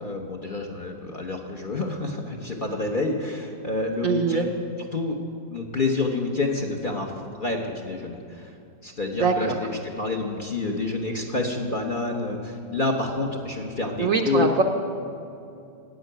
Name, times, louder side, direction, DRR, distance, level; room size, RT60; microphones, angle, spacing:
voice 1, 0.0-4.5 4.8-5.2 5.5-8.5 8.8-14.5, left 3 dB, 40° left, 1 dB, 0.9 m, -28 dB
voice 2, 4.0-4.5 9.2-9.6 14.0-14.6, right 5 dB, 60° right, 5 dB, 0.9 m, -23 dB
12.0 x 7.7 x 9.1 m, 2.6 s
omnidirectional pair, 1.8 m